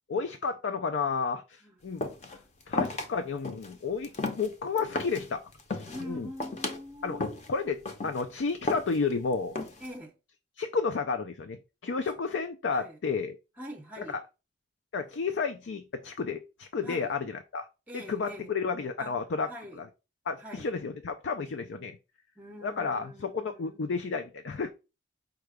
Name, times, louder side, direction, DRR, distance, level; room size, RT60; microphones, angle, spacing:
voice 1, 0.1-2.0 2.7-4.1 4.4-5.4 5.7-6.3 7.0-7.2 7.5-9.5 10.6-13.4 14.0-14.2 14.9-17.7 17.9-19.5 19.8-19.9 20.3-22.0 22.6-24.7, left 5 dB, 80° left, 0.4 m, -32 dB
sound 1, 2.0-2.4 2.7-3.1 3.4-3.7 4.0-5.3 5.6-6.0 6.4-6.8 7.2-7.5 7.9-8.2 8.7-9.1 9.6-10.0, left 2 dB, 40° left, 0.6 m, -33 dB
voice 2, 2.7-3.1 4.1-4.3 5.8-7.4 9.8-10.1 12.7-13.0 13.6-14.2 16.8-17.1 17.9-18.5 19.0-19.1 19.5-19.8 20.4-20.7 22.4-23.8, equal, 10° right, 0.6 m, -44 dB
4.7 x 2.2 x 4.8 m
head